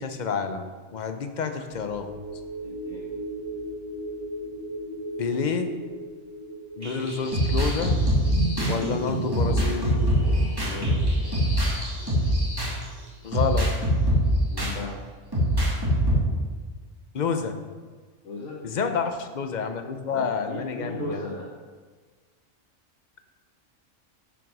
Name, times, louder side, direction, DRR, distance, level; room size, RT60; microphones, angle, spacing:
voice 1, 0.0-2.1 5.2-5.7 6.8-8.0 8.7-10.0 13.2-13.7 17.1-17.5 18.6-21.2, left 5 dB, 40° left, 7 dB, 0.8 m, -29 dB
sound 1, 1.7-12.3 12.7-12.8, right 1 dB, 80° right, 2.6 m, -39 dB
voice 2, 2.6-3.1 10.6-11.0 14.5-15.0 18.2-18.6 20.1-21.5, left 2 dB, 80° left, -5 dB, 2.0 m, -36 dB
sound 2, 6.8-12.8 13.3-14.8 15.3-16.2, equal, 15° right, 2.3 m, -23 dB
10.5 x 6.2 x 5.4 m, 1.4 s
omnidirectional pair, 1.3 m